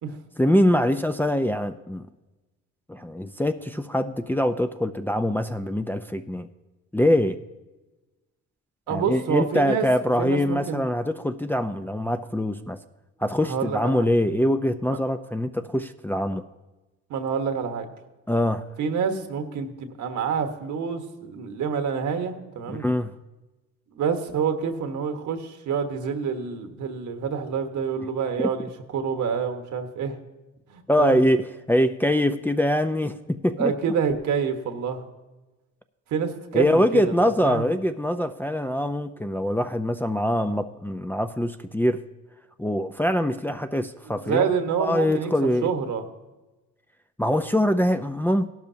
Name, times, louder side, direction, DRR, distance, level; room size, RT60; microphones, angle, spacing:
voice 1, 0.4-2.1 2.9-6.5 6.9-7.4 8.9-12.8 13.2-16.5 18.3-18.6 22.7-23.1 28.4-28.5 30.9-33.7 36.5-42.0 42.6-44.4 44.8-45.7 47.2-48.5, left 1 dB, 5° left, 7 dB, 0.5 m, -23 dB
voice 2, 8.9-9.9 10.2-10.8 13.5-14.1 14.9-15.0 17.1-17.9 18.8-22.8 23.9-28.7 28.9-30.2 30.7-31.2 33.6-35.0 36.1-37.1 37.4-37.7 44.2-45.3 45.6-46.0, right 6 dB, 75° right, 6 dB, 1.4 m, -27 dB
16.5 x 12.0 x 2.8 m, 1.1 s
cardioid pair, 90°, 30 cm